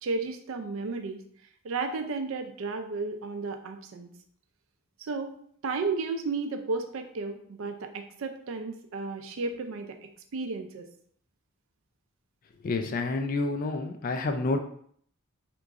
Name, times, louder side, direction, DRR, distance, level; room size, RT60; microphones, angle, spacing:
voice 1, 0.0-1.2 1.6-4.1 5.0-5.3 5.6-10.0 10.3-10.9, right 4 dB, 70° right, 6 dB, 0.4 m, -33 dB
voice 2, 12.6-14.6, left 3 dB, 40° left, 5 dB, 0.3 m, -29 dB
3.0 x 2.5 x 3.5 m, 0.62 s
head